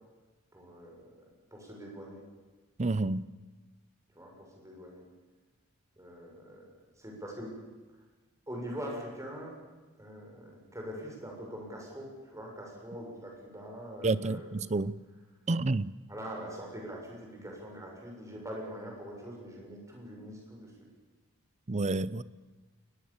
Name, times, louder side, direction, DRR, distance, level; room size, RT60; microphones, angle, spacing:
voice 1, 0.5-1.0 1.5-2.2 4.1-5.0 6.0-7.6 8.5-9.6 10.0-14.5 16.1-20.7, equal, 15° right, 6.9 m, -43 dB
voice 2, 2.8-3.3 14.0-15.0 15.5-15.9 21.7-22.2, right 3 dB, 35° right, 0.6 m, -29 dB
22.5 x 20.5 x 7.3 m
head